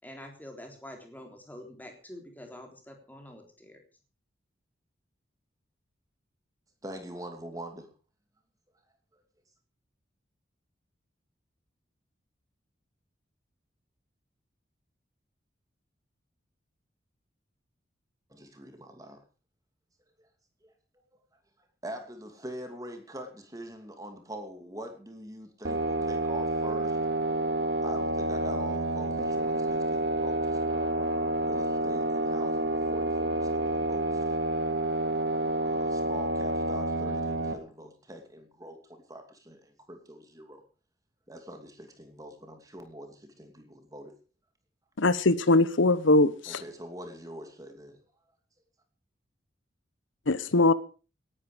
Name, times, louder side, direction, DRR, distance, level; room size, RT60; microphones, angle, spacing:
voice 1, 0.0-3.8, left 1 dB, 10° left, 3 dB, 3.6 m, -46 dB
voice 2, 6.8-7.9 18.3-19.2 20.6-20.7 21.8-27.0 27.8-34.3 35.6-40.6 41.3-44.2 46.5-48.0, right 1 dB, 20° right, 6 dB, 2.6 m, -44 dB
sound 1, 25.6-37.5, right 2 dB, 65° right, 2.6 m, -29 dB
voice 3, 45.0-46.6 50.3-50.7, left 2 dB, 85° left, 16 dB, 0.9 m, -22 dB
18.0 x 11.5 x 5.1 m, 0.36 s
head